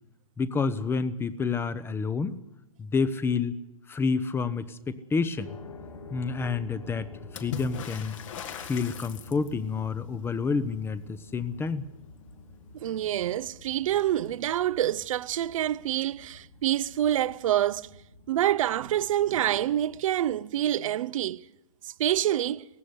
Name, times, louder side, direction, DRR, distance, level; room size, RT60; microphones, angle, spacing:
voice 1, 0.4-2.4 2.8-3.6 3.9-5.6 6.1-8.2 8.6-11.8, left 5 dB, 10° left, 1.0 m, -29 dB
sound 1, 5.4-20.3, left 3 dB, 75° left, 3.2 m, -49 dB
Water / Splash splatter, 7.3-9.7 13.0-13.1 13.4-14.2 15.2-15.3, left 7 dB, 60° left, 2.2 m, -39 dB
voice 2, 12.7-17.9 18.3-21.4 21.8-22.6, right 12 dB, 60° right, 0.7 m, -27 dB
18.0 x 15.5 x 9.7 m
hypercardioid pair, 120°, 19 cm